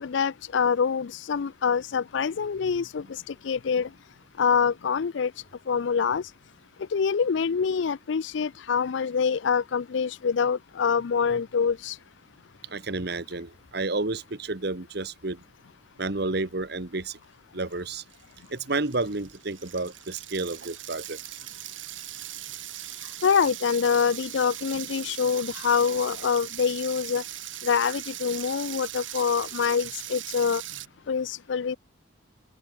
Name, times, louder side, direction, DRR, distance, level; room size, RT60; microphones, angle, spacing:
voice 1, 0.0-3.9 4.4-5.3 5.7-6.2 6.9-11.9 23.2-27.2 27.6-30.6 31.1-31.8, left 6 dB, 65° left, 0.4 m, -25 dB
voice 2, 12.7-15.4 16.0-17.2 17.5-18.0 18.5-21.2, right 3 dB, 55° right, 1.4 m, -30 dB
sound 1, 17.7-17.8 18.1-30.9, right 14 dB, 75° right, 3.3 m, -39 dB
open air
head